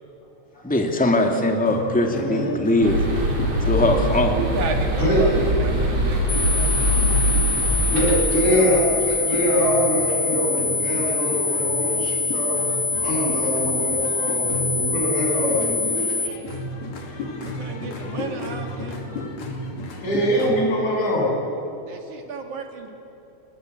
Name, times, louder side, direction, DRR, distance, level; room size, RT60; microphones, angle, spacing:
voice 1, 0.6-3.1 3.6-4.4, left 1 dB, 5° left, 3 dB, 2.1 m, -21 dB
sound 1, 1.4-20.6, left 1 dB, 70° left, 4.0 m, -34 dB
voice 2, 2.1-2.4 5.0-5.3 7.9-12.6 13.0-16.4 20.0-21.3, equal, 85° left, -2 dB, 9.1 m, -23 dB
sound 2, 2.8-8.2, equal, 60° right, 5.4 m, -22 dB
voice 3, 4.3-5.3 5.6-6.9 17.4-19.0 21.8-22.9, right 5 dB, 80° right, 4 dB, 3.8 m, -33 dB
sound 3, 6.3-16.3, left 3 dB, 30° left, 4.8 m, -25 dB
29.0 x 20.5 x 8.3 m, 2.9 s
omnidirectional pair, 3.3 m